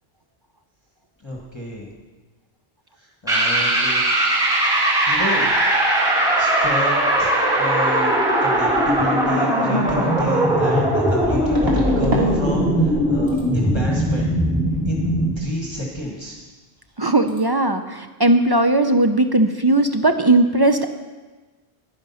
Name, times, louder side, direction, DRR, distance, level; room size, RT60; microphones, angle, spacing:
voice 1, 1.2-1.9 3.0-4.0 5.1-5.5 6.4-8.1 8.4-14.3 14.9-15.0 15.4-16.4, left 1 dB, 25° left, -3 dB, 1.7 m, -29 dB
sound 1, 3.3-15.3, right 1 dB, 5° right, 4.6 m, -19 dB
sound 2, 10.0-10.1 11.5-12.3 12.6-13.0 13.3-13.5 16.4-16.5 16.8-17.0 17.3-17.4, right 1 dB, 60° right, 2.4 m, -27 dB
voice 2, 17.0-20.9, right 2 dB, 30° right, 7 dB, 0.4 m, -18 dB
11.0 x 10.5 x 5.6 m, 1.3 s
omnidirectional pair, 1.1 m